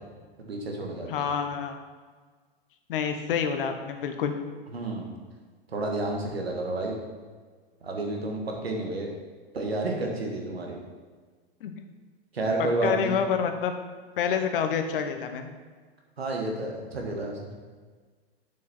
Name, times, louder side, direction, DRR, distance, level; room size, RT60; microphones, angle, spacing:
voice 1, 0.4-1.3 4.7-5.1 5.7-7.0 7.8-9.1 9.5-10.8 12.3-13.1 16.2-17.5, right 2 dB, 90° right, 1 dB, 1.8 m, -30 dB
voice 2, 1.1-1.8 2.9-4.4 11.6-11.7 12.6-13.7 14.2-15.5, left 7 dB, 65° left, 7 dB, 1.1 m, -28 dB
7.3 x 6.4 x 4.3 m, 1.5 s
hypercardioid pair, 110°, 30 cm